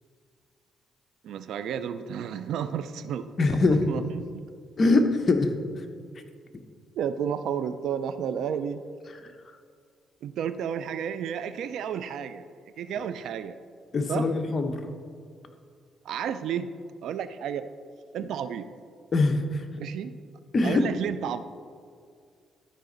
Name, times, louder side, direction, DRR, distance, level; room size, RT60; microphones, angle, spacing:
voice 1, 1.2-3.3 3.7-4.5 7.0-8.8 10.2-12.4 12.8-13.6 14.1-14.3 16.0-16.7 17.0-17.7 18.1-18.7 19.7-20.1 20.6-21.4, right 8 dB, 75° right, 12 dB, 0.4 m, -32 dB
voice 2, 3.4-3.9 4.8-5.5 13.9-14.8 19.1-19.6 20.5-20.9, left 3 dB, 40° left, 5 dB, 0.8 m, -22 dB
12.5 x 5.1 x 3.9 m, 2.1 s
cardioid pair, 90°, 0 cm